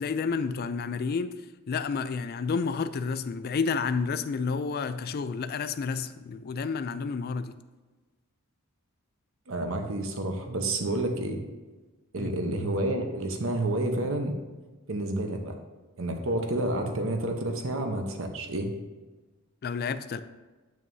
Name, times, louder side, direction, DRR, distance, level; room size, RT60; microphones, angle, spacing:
voice 1, 0.0-1.3 1.7-7.5 12.1-12.3 19.6-20.2, left 5 dB, 45° left, 11 dB, 0.4 m, -30 dB
voice 2, 9.5-11.4 12.1-14.4 14.9-15.6 16.0-18.7, right 1 dB, 70° right, 4 dB, 0.9 m, -29 dB
8.9 x 6.2 x 2.7 m, 1.3 s
head